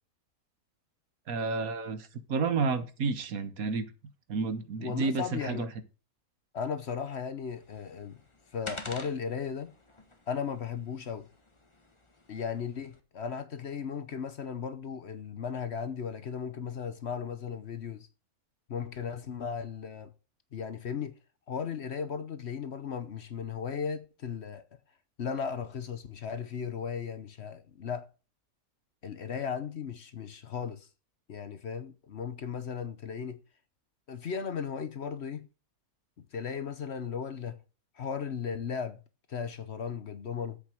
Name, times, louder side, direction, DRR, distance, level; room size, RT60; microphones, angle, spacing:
voice 1, 1.3-3.9 4.3-5.7, right 4 dB, 70° right, 1.6 m, -31 dB
voice 2, 4.8-5.7 6.5-8.2 8.5-9.7 10.3-11.3 12.3-18.1 18.7-20.1 20.5-21.2 21.5-24.6 25.2-28.1 29.0-30.9 31.3-33.4 34.1-35.5 36.2-37.6 37.9-39.0 39.3-40.6, left 6 dB, 55° left, 1.0 m, -36 dB
sound 1, 7.5-13.0, left 2 dB, 20° left, 1.4 m, -48 dB
8.2 x 6.2 x 7.5 m
omnidirectional pair, 1.5 m